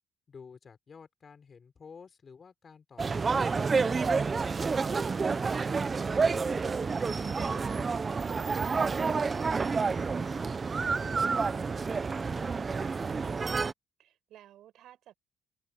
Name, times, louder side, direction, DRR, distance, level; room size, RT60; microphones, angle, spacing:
voice 1, 0.3-4.0 4.5-7.9 8.3-10.5 10.8-13.3, left 5 dB, 45° left, 4.8 m, -53 dB
sound 1, 3.0-13.7, right 4 dB, 35° right, 0.9 m, -29 dB
voice 2, 14.0-15.1, right 12 dB, 80° right, 6.7 m, -55 dB
cardioid pair, 90°, 0 cm